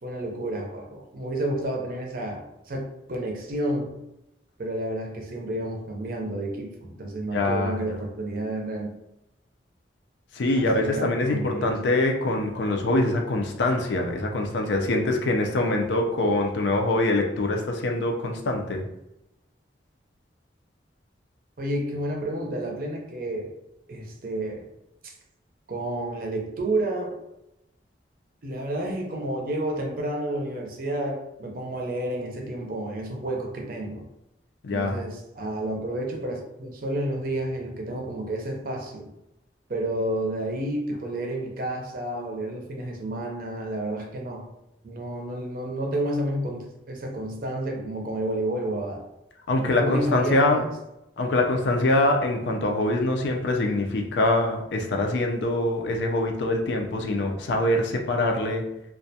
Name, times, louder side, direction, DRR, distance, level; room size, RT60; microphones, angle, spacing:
voice 1, 0.0-4.0 4.6-8.9 10.6-11.7 21.6-23.5 23.9-24.7 25.0-25.1 25.7-27.2 28.4-34.1 34.7-39.1 39.7-44.5 44.8-49.0 49.6-50.7, right 1 dB, 50° right, 0 dB, 0.5 m, -30 dB
voice 2, 7.3-7.8 10.3-18.8 34.6-35.0 49.5-50.6 51.2-58.7, left 2 dB, 75° left, 2 dB, 0.4 m, -24 dB
2.3 x 2.1 x 2.7 m, 0.88 s
head